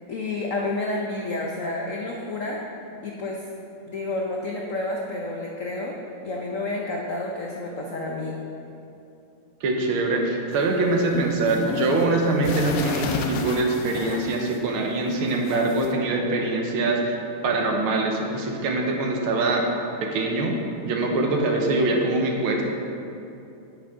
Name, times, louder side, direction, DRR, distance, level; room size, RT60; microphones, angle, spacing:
voice 1, 0.1-2.6 3.0-3.4 3.9-6.0 6.2-8.3, left 2 dB, 90° left, -1 dB, 0.7 m, -30 dB
voice 2, 9.6-17.2 17.4-19.7 20.0-20.6 20.8-22.6, right 2 dB, 75° right, 1 dB, 1.8 m, -23 dB
sound 1, 10.5-14.8 15.1-15.9, left 4 dB, 70° left, 1.1 m, -32 dB
8.9 x 8.5 x 3.6 m, 2.7 s
omnidirectional pair, 2.4 m